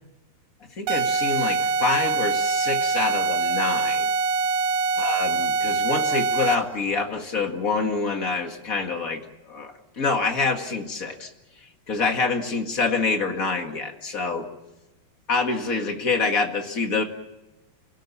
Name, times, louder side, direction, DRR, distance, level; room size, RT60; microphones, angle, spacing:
voice 1, 0.8-4.1 5.0-9.2 9.5-11.3 11.9-14.5 15.3-17.0, left 4 dB, 55° left, 4 dB, 0.9 m, -26 dB
sound 1, 0.9-6.8, right 4 dB, 85° right, 3.2 m, -24 dB
27.5 x 18.0 x 8.5 m, 1.0 s
omnidirectional pair, 4.8 m